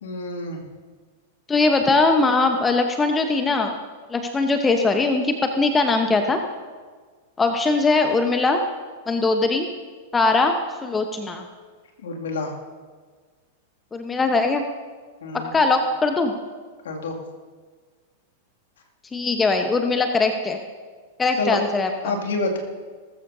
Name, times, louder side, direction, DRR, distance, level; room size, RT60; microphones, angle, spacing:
voice 1, 0.0-0.6 12.0-12.5 15.2-15.5 16.8-17.2 21.4-21.6 22.0-22.6, left 3 dB, 65° left, 0 dB, 2.5 m, -27 dB
voice 2, 1.5-3.7 4.1-6.4 7.4-8.6 9.1-9.7 10.1-10.6 10.8-11.4 13.9-14.6 15.3-16.3 19.1-20.6 21.2-22.1, left 3 dB, 15° left, 5 dB, 1.1 m, -21 dB
20.0 x 14.5 x 2.8 m, 1.5 s
figure-of-eight pair, 95°, 0 cm